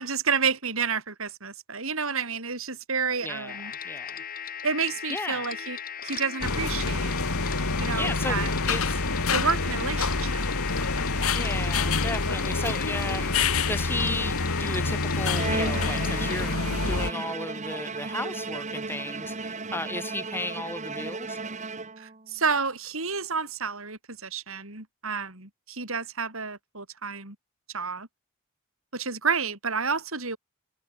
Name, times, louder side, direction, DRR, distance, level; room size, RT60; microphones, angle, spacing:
voice 1, 0.0-3.7 4.6-7.1 7.8-8.5 9.3-10.4 22.0-27.3 27.7-28.1 28.9-30.4, right 5 dB, 70° right, 5.1 m, -30 dB
voice 2, 3.2-4.2 5.1-5.5 7.9-9.0 11.3-13.3 13.7-16.5 16.8-21.4, left 2 dB, 10° left, 1.5 m, -34 dB
sound 1, 3.5-16.6, left 8 dB, 40° left, 6.3 m, -37 dB
sound 2, 6.4-17.1, left 3 dB, 75° left, 2.0 m, -27 dB
Bowed string instrument, 15.3-22.3, right 3 dB, 35° right, 1.4 m, -34 dB
head